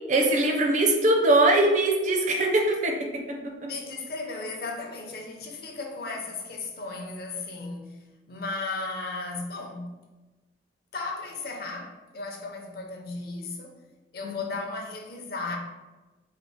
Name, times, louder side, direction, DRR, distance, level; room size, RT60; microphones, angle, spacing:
voice 1, 0.1-3.7 14.2-14.3, right 2 dB, 45° right, 1 dB, 0.6 m, -22 dB
voice 2, 3.6-8.0 8.3-10.0 10.9-13.7 14.1-15.6, left 3 dB, 60° left, 2 dB, 0.6 m, -35 dB
3.4 x 2.0 x 4.0 m, 1.2 s
head